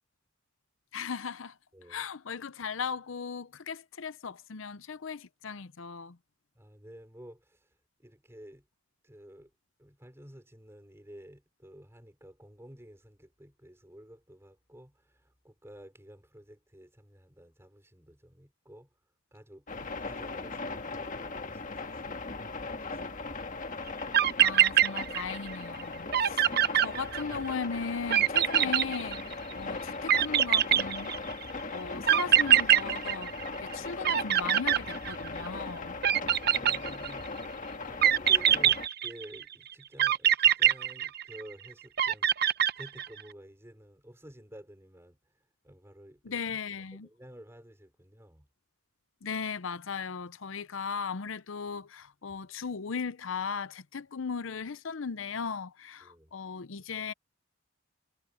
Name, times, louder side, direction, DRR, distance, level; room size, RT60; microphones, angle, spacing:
voice 1, 0.9-1.5 1.9-6.2 24.4-26.5 26.7-31.1 31.7-33.3 33.6-35.9 46.2-47.1 49.2-57.1, left 5 dB, 80° left, 0.7 m, -37 dB
voice 2, 1.7-2.1 6.5-8.6 9.0-9.5 9.8-19.0 19.3-22.2 22.6-23.4 33.9-34.0 36.3-46.4 47.0-48.5 56.0-56.3, equal, 15° right, 4.4 m, -52 dB
sound 1, 19.7-38.9, left 3 dB, 40° left, 1.6 m, -38 dB
sound 2, 23.9-24.0 24.1-25.5 25.8-25.9 26.1-27.5 28.1-29.5 30.1-31.4 32.1-33.7 34.0-35.5 36.0-37.3 38.0-39.4 40.0-41.5 42.0-43.2, right 10 dB, 50° right, 0.8 m, -24 dB
head